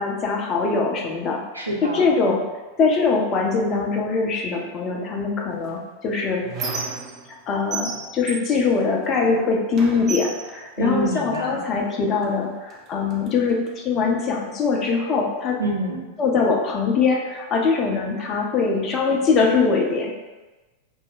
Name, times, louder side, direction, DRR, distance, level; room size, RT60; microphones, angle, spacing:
voice 1, 0.0-1.4 1.8-2.5 2.8-6.5 7.5-15.6 16.2-20.1, left 4 dB, 30° left, 0 dB, 0.6 m, -22 dB
voice 2, 1.5-2.0 10.8-11.6 15.6-16.0, right 1 dB, 85° right, -2 dB, 0.7 m, -26 dB
Squeak, 5.6-7.4 7.7-9.4 9.7-11.5 12.2-12.4 12.7-13.7, right 4 dB, 35° right, 0.5 m, -34 dB
3.2 x 2.1 x 3.9 m, 1.1 s
figure-of-eight pair, 90°, 0 cm